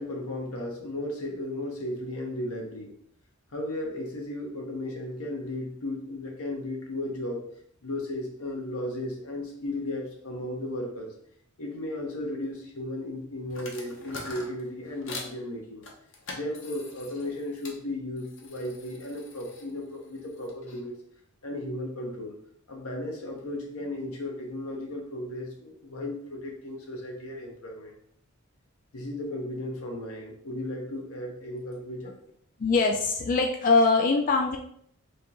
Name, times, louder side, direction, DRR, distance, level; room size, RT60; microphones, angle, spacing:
voice 1, 0.0-2.9 3.5-7.4 7.8-11.1 11.6-15.8 16.3-21.0 21.4-22.4 22.7-27.9 28.9-32.1, left 1 dB, 85° left, 1 dB, 1.0 m, -35 dB
sound 1, 13.5-15.3 15.8-17.8 18.2-20.8, left 2 dB, 60° left, 0.8 m, -44 dB
voice 2, 32.6-34.6, left 3 dB, 40° left, 2 dB, 0.3 m, -22 dB
3.6 x 2.9 x 3.7 m, 0.66 s
head